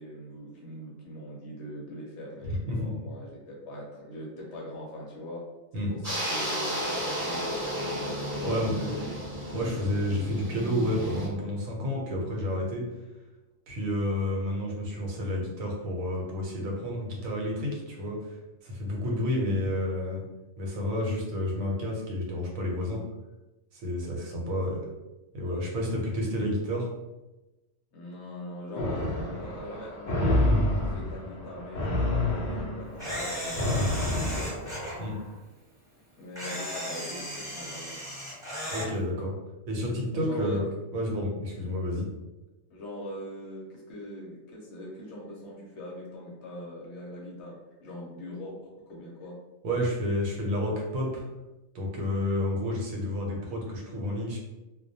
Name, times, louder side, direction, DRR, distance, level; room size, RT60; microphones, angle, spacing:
voice 1, 0.0-7.5 8.4-9.6 27.9-34.6 36.2-38.0 40.1-40.6 42.7-49.3, left 1 dB, 65° left, -3 dB, 0.8 m, -41 dB
voice 2, 2.4-2.9 5.7-5.9 8.0-8.7 9.5-12.9 13.7-18.2 18.6-20.2 20.6-23.0 23.7-24.8 25.3-26.9 35.0-35.2 38.7-39.3 39.7-40.7 40.9-42.1 49.6-51.2 51.7-54.4, left 1 dB, 80° right, -1 dB, 1.0 m, -30 dB
sound 1, 6.0-11.3, equal, 20° right, 0.5 m, -33 dB
sound 2, 28.8-35.2, left 1 dB, 85° left, 0.4 m, -28 dB
Camera, 33.0-34.9 36.4-38.9, equal, 5° right, 0.9 m, -36 dB
2.2 x 2.1 x 2.6 m, 1.1 s
omnidirectional pair, 1.4 m